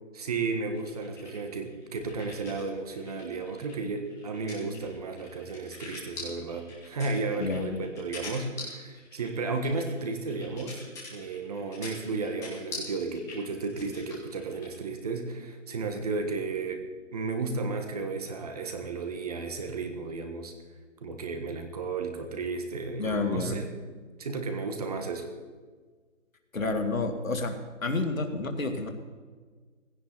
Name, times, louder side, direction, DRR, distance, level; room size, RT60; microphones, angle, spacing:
voice 1, 0.1-10.8 11.1-16.8 17.1-20.5 21.0-23.7 24.2-25.3, right 3 dB, 30° right, 6 dB, 1.5 m, -33 dB
sound 1, 0.7-2.7 3.0-14.8, left 3 dB, 10° left, 2.3 m, -44 dB
voice 2, 7.4-7.9 23.0-23.6 26.5-28.9, left 3 dB, 90° left, 5 dB, 2.4 m, -30 dB
17.5 x 16.5 x 4.1 m, 1.5 s
hypercardioid pair, 165°, 39 cm